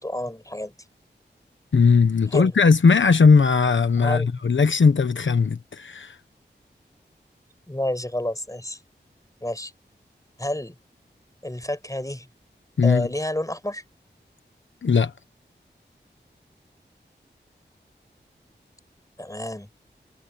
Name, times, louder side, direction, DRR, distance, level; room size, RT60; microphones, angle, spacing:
voice 1, 0.0-0.7 2.3-2.5 4.0-4.4 7.7-8.8 9.4-9.7 10.4-10.7 11.4-12.3 12.8-13.8 19.2-19.7, left 1 dB, 15° left, 5.3 m, -29 dB
voice 2, 1.7-6.2 12.8-13.1 14.8-15.1, left 5 dB, 90° left, 1.1 m, -18 dB
cardioid pair, 40°, 19 cm